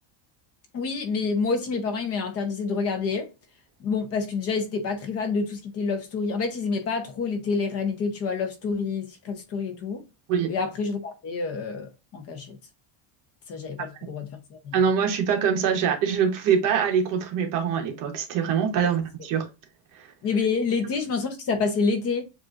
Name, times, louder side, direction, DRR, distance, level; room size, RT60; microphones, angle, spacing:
voice 1, 0.7-3.3 3.8-10.0 10.5-12.6 13.5-14.8 18.8-18.9 20.2-22.3, left 4 dB, 30° left, 0.7 m, -28 dB
voice 2, 14.7-19.5, right 7 dB, 45° right, 1.0 m, -24 dB
7.6 x 2.6 x 2.4 m
cardioid pair, 175°, 46 cm